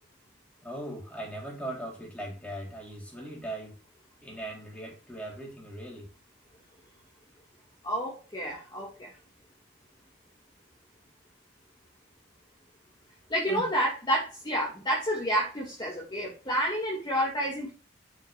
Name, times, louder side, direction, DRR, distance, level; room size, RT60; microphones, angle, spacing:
voice 1, 0.6-3.8 4.2-6.1 13.5-13.7, right 1 dB, 10° left, 4.2 m, -39 dB
voice 2, 7.8-9.1 13.3-17.7, equal, 25° left, 2.8 m, -29 dB
11.5 x 6.8 x 2.7 m
head